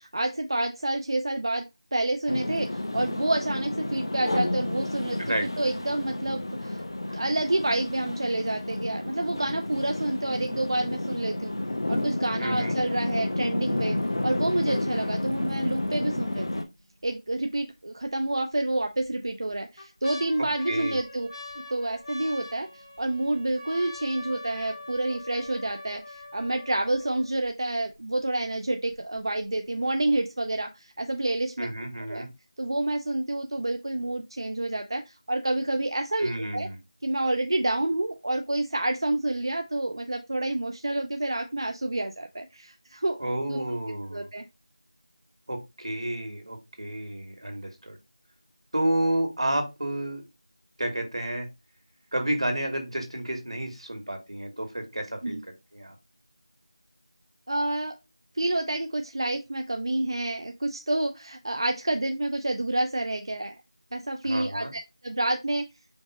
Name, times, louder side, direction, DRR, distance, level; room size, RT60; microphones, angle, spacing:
voice 1, 0.0-1.6 1.9-2.7 2.9-6.8 7.1-11.5 11.9-14.0 14.2-16.7 17.0-21.3 21.7-31.7 32.0-32.2 32.6-36.7 37.0-43.2 43.5-43.6 44.1-44.5 55.2-55.4 57.5-58.0 58.3-63.6 63.9-65.7, right 1 dB, 55° right, 5 dB, 0.5 m, -28 dB
sound 1, 2.3-16.6, left 1 dB, 55° left, 0.6 m, -31 dB
voice 2, 12.4-12.7 20.7-21.0 31.6-32.3 36.2-36.8 43.2-44.3 45.5-48.0 48.7-50.2 50.8-51.5 52.1-55.9 64.2-64.7, right 1 dB, 85° right, 4 dB, 1.8 m, -30 dB
sound 2, 16.8-17.0 17.5-17.6 18.5-19.0 19.5-27.5 28.2-28.3 28.4-28.9 29.4-29.5, left 2 dB, 75° left, 2.1 m, -43 dB
5.2 x 2.0 x 4.8 m, 0.23 s
figure-of-eight pair, 175°, 3 cm